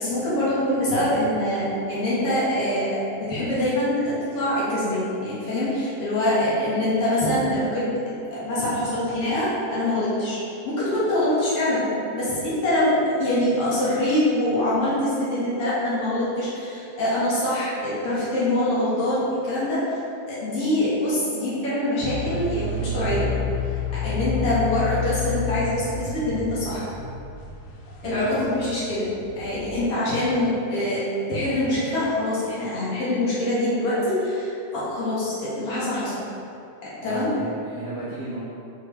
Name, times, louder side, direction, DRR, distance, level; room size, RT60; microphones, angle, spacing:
voice 1, 0.0-10.4 10.6-20.0 20.3-23.3 23.9-26.9 28.0-29.1 29.3-31.0 31.3-36.3 36.8-37.3, left 1 dB, 55° left, -10 dB, 2.0 m, -24 dB
sound 1, 22.0-29.8, left 4 dB, 80° left, 2.3 m, -30 dB
voice 2, 28.0-28.5 29.7-29.8 37.0-38.4, right 2 dB, 90° right, -12 dB, 0.8 m, -35 dB
6.7 x 4.4 x 3.3 m, 2.7 s
omnidirectional pair, 3.9 m